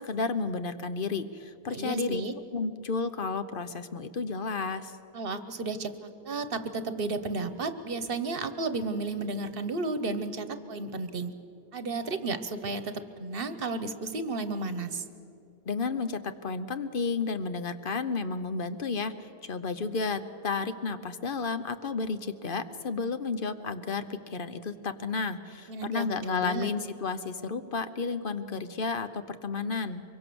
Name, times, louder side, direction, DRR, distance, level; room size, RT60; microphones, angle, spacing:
voice 1, 0.0-2.2 2.5-5.0 15.7-30.0, left 4 dB, 60° left, 11 dB, 1.0 m, -32 dB
voice 2, 1.7-2.3 5.1-11.3 11.7-15.0 25.7-26.7, right 3 dB, 65° right, 11 dB, 1.3 m, -33 dB
24.5 x 23.0 x 7.0 m, 2.6 s
omnidirectional pair, 1.1 m